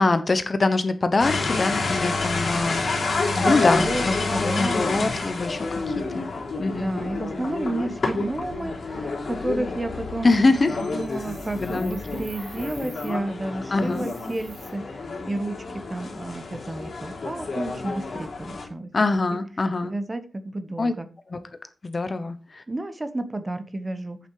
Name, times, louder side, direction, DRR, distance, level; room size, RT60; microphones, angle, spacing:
voice 1, 0.0-2.8 3.5-4.2 4.6-6.3 6.6-7.0 10.2-10.8 11.6-12.0 13.7-14.1 18.9-19.9 20.8-20.9 21.3-21.4 21.8-22.6, left 3 dB, 30° left, 11 dB, 0.9 m, -23 dB
sound 1, 1.2-18.7, left 3 dB, 55° left, 3.4 m, -29 dB
voice 2, 3.3-4.1 4.3-5.1 6.7-10.5 10.8-18.9 19.3-19.4 19.8-21.1 22.7-24.2, right 2 dB, 20° right, 10 dB, 0.9 m, -31 dB
sound 2, 11.1-13.1 13.8-14.7, right 4 dB, 85° right, 3.4 m, -47 dB
8.4 x 7.3 x 4.8 m, 0.35 s
wide cardioid pair, 170°, 0 cm